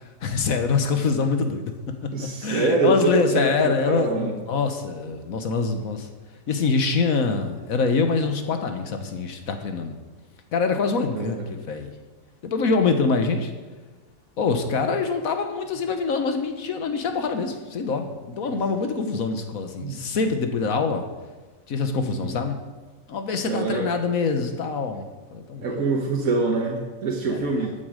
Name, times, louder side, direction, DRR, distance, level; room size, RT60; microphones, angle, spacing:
voice 1, 0.2-1.7 2.2-6.1 6.5-10.0 10.5-11.9 12.4-13.5 14.4-21.0 21.7-22.6 23.1-25.8 27.3-27.5, left 4 dB, 80° left, 6 dB, 1.6 m, -25 dB
voice 2, 2.1-4.3 11.1-11.6 18.5-18.6 19.8-20.0 22.1-22.4 23.4-23.9 25.6-27.7, right 3 dB, 75° right, -1 dB, 1.7 m, -25 dB
14.0 x 8.5 x 5.1 m, 1.3 s
omnidirectional pair, 1.5 m